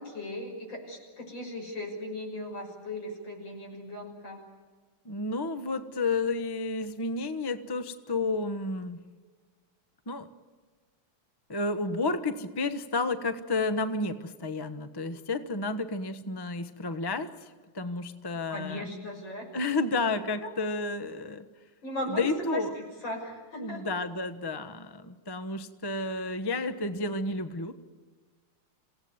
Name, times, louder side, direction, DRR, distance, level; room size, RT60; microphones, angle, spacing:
voice 1, 0.0-4.4 18.5-19.5 20.0-20.1 20.4-20.5 21.8-23.9, left 1 dB, 70° left, 1 dB, 6.9 m, -37 dB
voice 2, 5.0-9.0 10.1-10.3 11.5-18.9 19.5-21.4 22.1-22.7 23.6-27.7, left 3 dB, 15° left, 10 dB, 0.9 m, -31 dB
27.5 x 17.5 x 9.5 m, 1.4 s
omnidirectional pair, 2.1 m